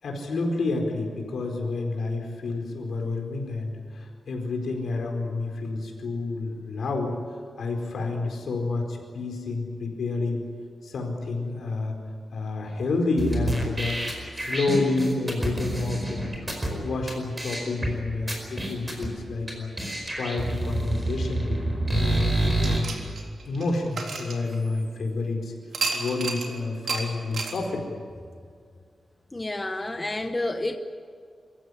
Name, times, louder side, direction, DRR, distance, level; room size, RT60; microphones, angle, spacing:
voice 1, 0.0-10.4 10.8-12.0 12.3-14.0 14.3-16.3 16.7-19.7 20.2-22.9 23.5-25.5 25.9-27.8, left 3 dB, 75° left, 2 dB, 4.7 m, -29 dB
sound 1, 13.2-16.7 17.1-17.2 17.4-17.9 18.3-19.1 19.5-19.6 19.8-22.8, right 2 dB, 15° right, 4.9 m, -28 dB
sound 2, 22.6-25.0 25.7-26.5 26.9-27.0 27.3-27.6, right 4 dB, 70° right, 3.6 m, -31 dB
voice 2, 29.3-30.8, left 2 dB, 15° left, 6 dB, 0.9 m, -29 dB
26.0 x 15.5 x 9.9 m, 2.1 s
wide cardioid pair, 165°, 0 cm